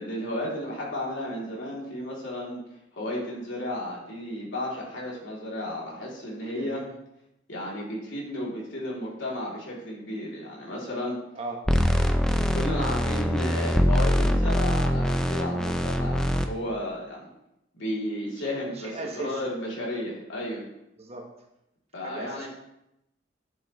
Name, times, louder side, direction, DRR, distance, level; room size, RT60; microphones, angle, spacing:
voice 1, 0.0-2.6 2.9-6.8 7.5-11.2 12.5-17.3 17.7-20.6 21.9-22.5, left 1 dB, 80° left, -4 dB, 3.1 m, -33 dB
voice 2, 6.4-6.9 11.3-11.7 18.4-19.5 21.0-21.3 22.0-22.5, right 2 dB, 35° right, 2 dB, 1.3 m, -38 dB
sound 1, 11.7-16.5, equal, 5° left, 0.5 m, -23 dB
11.0 x 7.3 x 3.2 m, 0.85 s
head